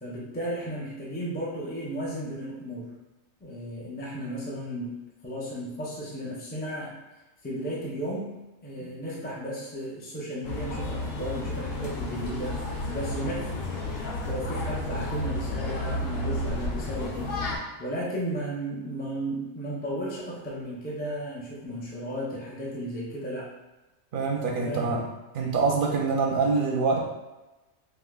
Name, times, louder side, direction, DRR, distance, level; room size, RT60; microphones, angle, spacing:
voice 1, 0.0-2.9 3.4-5.0 5.2-6.9 7.4-8.3 8.6-12.6 12.9-13.7 14.2-17.3 17.8-23.5 24.6-24.9, right 1 dB, 15° left, -6 dB, 0.3 m, -34 dB
sound 1, 10.4-17.6, left 2 dB, 85° left, 1.2 m, -32 dB
voice 2, 24.1-25.0 25.3-27.0, right 4 dB, 60° right, -1 dB, 0.6 m, -25 dB
4.9 x 2.1 x 2.3 m, 1.1 s
omnidirectional pair, 1.3 m